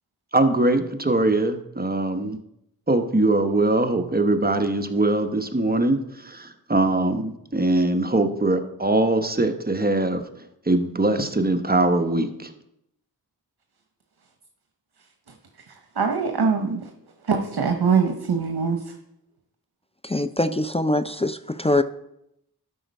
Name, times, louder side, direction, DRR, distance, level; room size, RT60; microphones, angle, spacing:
voice 1, 0.3-2.4 2.9-10.2 10.7-12.5, right 2 dB, 25° right, 7 dB, 0.9 m, -22 dB
voice 2, 15.3-16.9 17.2-19.0, right 5 dB, 80° right, 5 dB, 0.9 m, -24 dB
voice 3, 20.0-21.8, left 1 dB, 15° left, 11 dB, 0.4 m, -23 dB
12.5 x 4.4 x 5.2 m, 0.81 s
wide cardioid pair, 40°, 38 cm